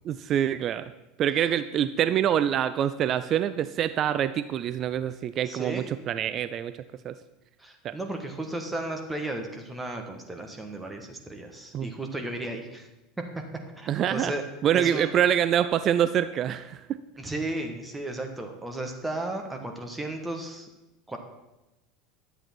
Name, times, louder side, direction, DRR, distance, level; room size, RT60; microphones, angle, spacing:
voice 1, 0.0-0.9 1.2-6.7 7.0-7.1 7.8-7.9 11.7-11.9 13.9-14.3 14.6-16.8, right 10 dB, 40° right, 13 dB, 0.4 m, -25 dB
voice 2, 5.5-5.9 7.6-12.9 13.2-13.4 13.8-14.4 14.7-15.1 17.2-20.7 21.1-21.2, right 2 dB, 10° right, 3 dB, 1.4 m, -34 dB
11.0 x 7.8 x 4.5 m, 0.95 s
figure-of-eight pair, 80°, 0 cm